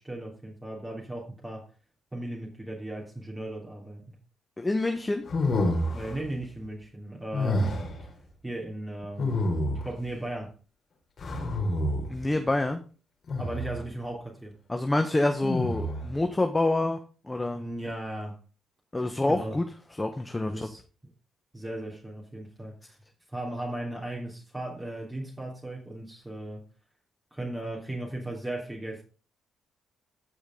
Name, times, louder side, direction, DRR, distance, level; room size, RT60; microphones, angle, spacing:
voice 1, 0.0-1.7 2.1-4.1 5.8-8.1 8.4-9.4 9.8-10.5 13.4-14.5 17.5-18.4 19.3-19.6 20.5-20.8 21.5-23.0 23.3-26.6 27.3-29.0, right 1 dB, 10° right, 3.1 m, -37 dB
voice 2, 4.6-5.2 12.1-12.8 14.7-17.0 17.2-17.6 18.9-19.6 19.9-20.7, left 2 dB, 15° left, 1.0 m, -27 dB
sound 1, 5.3-6.2 7.3-8.0 9.2-10.0 11.2-12.2 13.3-13.8 15.4-16.1, left 1 dB, 50° left, 3.3 m, -28 dB
15.0 x 5.1 x 3.8 m
cardioid pair, 90°, 0 cm